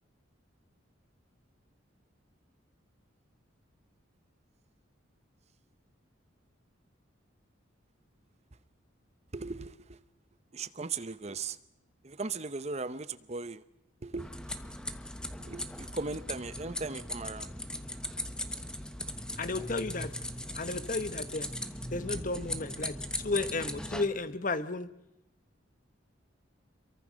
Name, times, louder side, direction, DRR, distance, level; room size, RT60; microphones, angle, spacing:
voice 1, 9.3-10.0 10.5-11.6 12.0-13.6 14.0-14.3 15.4-17.5 22.4-22.5, right 3 dB, 35° right, 0.8 m, -38 dB
sound 1, 14.2-24.1, left 1 dB, 5° left, 1.1 m, -39 dB
voice 2, 19.4-20.1 20.6-21.5 21.9-22.9 23.2-24.9, left 3 dB, 40° left, 1.2 m, -33 dB
27.5 x 23.5 x 6.4 m
head